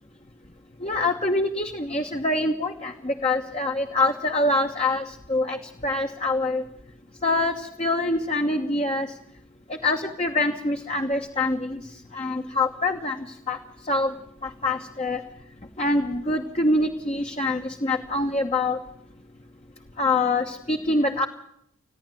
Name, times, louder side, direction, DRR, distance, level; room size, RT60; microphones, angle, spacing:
voice 1, 0.8-5.6 5.8-6.6 7.2-9.1 9.8-11.8 12.1-13.6 13.9-14.1 14.4-15.2 15.8-18.8 20.0-21.3, left 2 dB, 25° left, 3 dB, 1.2 m, -25 dB
30.0 x 10.5 x 9.2 m, 0.77 s
head